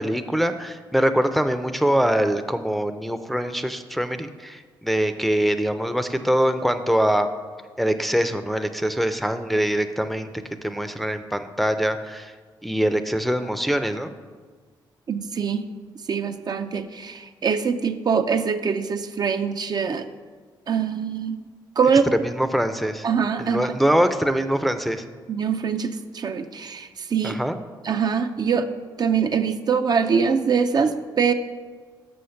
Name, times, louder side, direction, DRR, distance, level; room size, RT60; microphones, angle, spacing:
voice 1, 0.0-7.3 7.8-10.3 10.6-12.3 12.6-14.1 22.1-23.1 23.4-25.0 27.2-27.6, equal, ahead, 8 dB, 0.5 m, -23 dB
voice 2, 15.1-15.7 16.1-20.1 20.7-21.4 21.8-22.1 23.0-23.7 25.3-27.4 27.8-28.7 29.0-31.3, right 6 dB, 50° right, 7 dB, 0.5 m, -23 dB
6.4 x 6.3 x 5.7 m, 1.5 s
cardioid pair, 75°, 9 cm